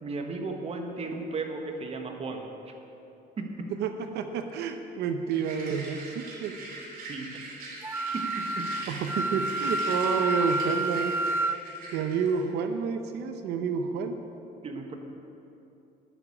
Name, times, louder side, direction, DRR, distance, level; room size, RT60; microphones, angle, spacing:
voice 1, 0.0-2.7 3.4-3.7 7.1-7.4 8.1-8.7 14.6-14.9, right 3 dB, 35° right, 3 dB, 1.5 m, -35 dB
voice 2, 3.7-6.5 8.9-11.1 11.9-14.2, right 6 dB, 80° right, 7 dB, 0.8 m, -29 dB
sound 1, 5.3-12.4, right 2 dB, 60° right, 3.1 m, -42 dB
Wind instrument woodwind instrument, 7.8-11.6, right 2 dB, 15° right, 0.4 m, -29 dB
11.0 x 7.0 x 8.6 m, 2.9 s
cardioid pair, 110°, 17 cm